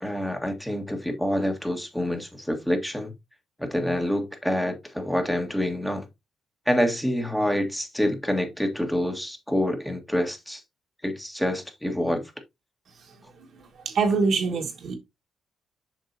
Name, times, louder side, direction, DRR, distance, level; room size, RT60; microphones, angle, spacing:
voice 1, 0.0-3.1 3.6-6.1 6.7-10.6 11.0-12.2, left 1 dB, 5° left, 1.8 m, -27 dB
voice 2, 13.4-15.0, right 4 dB, 60° right, 1.7 m, -25 dB
7.4 x 6.0 x 2.8 m
cardioid pair, 90°, 0 cm